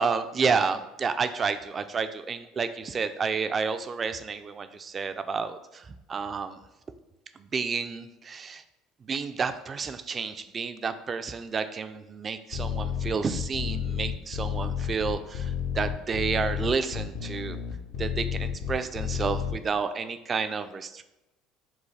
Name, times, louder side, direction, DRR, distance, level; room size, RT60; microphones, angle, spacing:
voice 1, 0.0-5.8 6.1-6.6 7.4-8.6 9.1-17.6 18.0-21.0, right 5 dB, 35° right, 10 dB, 0.4 m, -30 dB
sound 1, 12.5-19.5, left 8 dB, 70° left, 0.7 m, -31 dB
6.1 x 2.3 x 3.3 m, 0.96 s
supercardioid pair, 80°, 0 cm